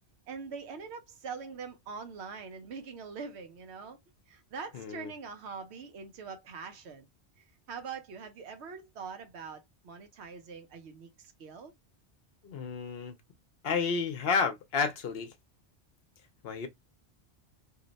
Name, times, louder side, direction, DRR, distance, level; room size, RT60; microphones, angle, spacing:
voice 1, 0.3-4.0 4.3-7.1 7.4-11.7, right 5 dB, 75° right, 1.0 m, -43 dB
voice 2, 4.7-5.1 12.4-13.2 13.6-15.3 16.4-16.7, left 5 dB, 65° left, 0.8 m, -31 dB
2.8 x 2.0 x 3.8 m
omnidirectional pair, 1.1 m